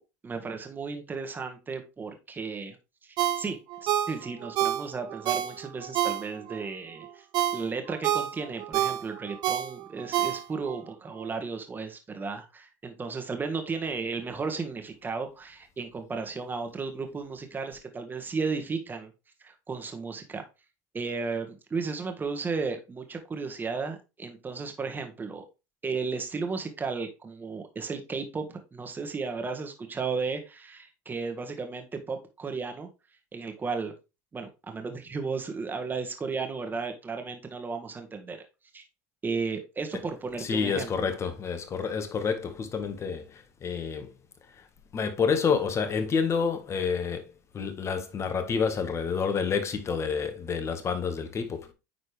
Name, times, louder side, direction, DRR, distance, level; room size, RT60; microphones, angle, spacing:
voice 1, 0.2-2.8 3.0-7.2 7.5-19.1 19.4-20.4 20.9-25.4 25.8-32.9 33.3-33.9 34.3-38.4 38.7-38.8 39.2-41.1, right 4 dB, 20° right, 1.8 m, -34 dB
Ringtone, 3.2-6.6 7.0-10.8 11.2-11.3, right 12 dB, 55° right, 0.8 m, -29 dB
voice 2, 40.4-44.1 44.5-44.7 44.9-51.7, left 6 dB, 35° left, 1.7 m, -29 dB
9.5 x 4.2 x 3.4 m
supercardioid pair, 95°, 9 cm